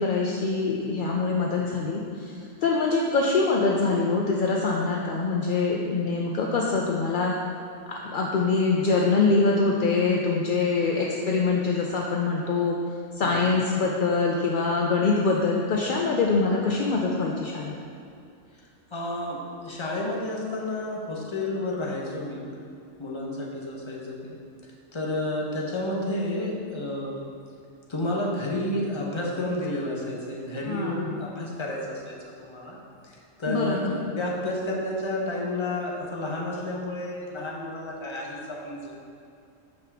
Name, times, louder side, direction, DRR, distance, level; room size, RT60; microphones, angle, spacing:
voice 1, 0.0-2.4 2.6-7.4 7.9-12.8 13.2-17.8 30.6-31.2 33.5-33.9, left 4 dB, 60° left, -2 dB, 0.5 m, -24 dB
voice 2, 13.2-13.5 18.9-22.5 23.0-24.4 24.9-27.2 27.9-32.8 33.0-38.9, left 1 dB, 25° left, -3 dB, 0.9 m, -31 dB
6.7 x 5.6 x 3.5 m, 2.6 s
omnidirectional pair, 1.4 m